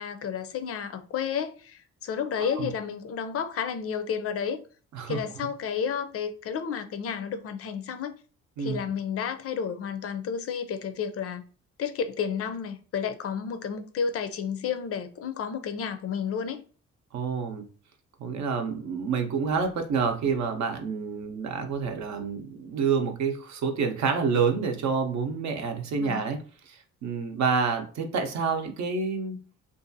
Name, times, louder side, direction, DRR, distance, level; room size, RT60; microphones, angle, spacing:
voice 1, 0.0-4.6 5.1-8.2 8.6-11.4 11.8-16.6 26.0-26.2, left 7 dB, 50° left, 0.4 m, -31 dB
voice 2, 17.1-17.7 18.2-26.4 26.7-29.4, right 5 dB, 65° right, 0.7 m, -28 dB
2.6 x 2.3 x 2.6 m
cardioid pair, 90°, 30 cm